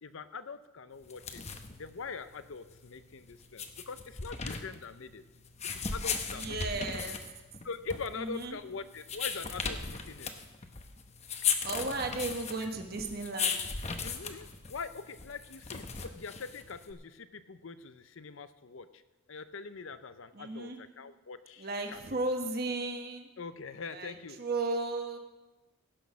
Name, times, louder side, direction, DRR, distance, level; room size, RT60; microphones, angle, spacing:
voice 1, 0.0-1.4 1.8-5.2 5.7-6.6 7.6-10.3 14.0-19.0 19.3-22.0 23.4-24.4, left 4 dB, 65° left, 12 dB, 0.6 m, -43 dB
sound 1, 1.0-16.9, left 5 dB, 30° left, 0.8 m, -37 dB
voice 2, 6.3-7.2 8.2-8.6 11.6-13.7 20.3-20.8 21.6-23.3 23.9-25.2, right 2 dB, 45° right, 4 dB, 1.3 m, -35 dB
16.0 x 6.3 x 6.2 m, 1.1 s
head